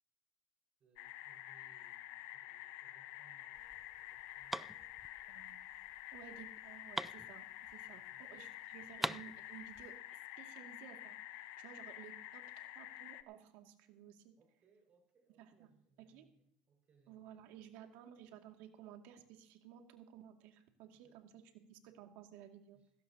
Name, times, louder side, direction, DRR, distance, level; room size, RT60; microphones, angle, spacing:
voice 1, 0.8-5.5 7.8-8.2 14.4-17.5 20.9-21.5 22.7-22.9, right 4 dB, 40° right, 2 dB, 5.0 m, -72 dB
sound 1, 1.0-13.2, left 15 dB, 75° left, 0.7 m, -50 dB
sound 2, 3.5-8.1 8.4-8.5 8.7-10.0, right 1 dB, 5° right, 0.4 m, -44 dB
voice 2, 5.3-5.8 6.1-14.3 15.4-15.7 16.0-16.3 17.1-22.8, right 10 dB, 70° right, 4 dB, 2.2 m, -56 dB
18.5 x 16.0 x 2.8 m, 0.71 s
supercardioid pair, 110°, 3 cm